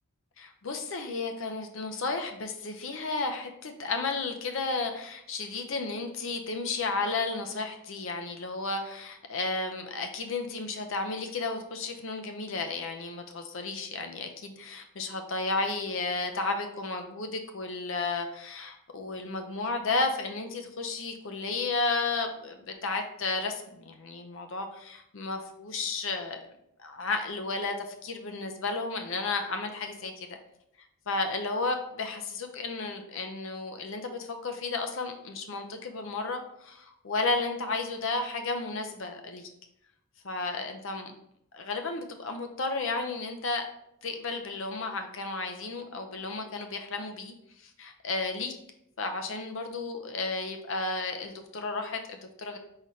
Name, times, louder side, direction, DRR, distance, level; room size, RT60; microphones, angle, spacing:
voice 1, 0.4-26.4 26.8-30.4 31.1-39.5 40.2-41.1 41.5-43.7 44.0-47.3 47.6-48.5 49.0-52.6, left 3 dB, 60° left, 5 dB, 0.6 m, -33 dB
4.0 x 4.0 x 3.2 m, 0.77 s
head